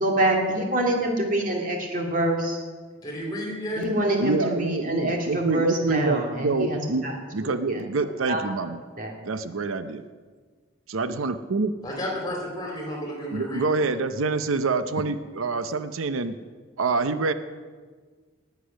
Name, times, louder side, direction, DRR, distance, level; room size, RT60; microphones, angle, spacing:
voice 1, 0.0-2.6 3.8-7.1 7.4-7.8 8.3-8.5 9.0-9.1, right 1 dB, 40° right, 1 dB, 2.4 m, -26 dB
voice 2, 3.0-3.9 11.8-13.9, equal, 20° left, 0 dB, 3.7 m, -32 dB
voice 3, 4.2-7.0 7.3-8.8 9.2-10.0 10.9-11.7 13.3-16.4 16.8-17.3, right 3 dB, 90° right, 11 dB, 0.7 m, -26 dB
19.5 x 8.3 x 6.3 m, 1.5 s
head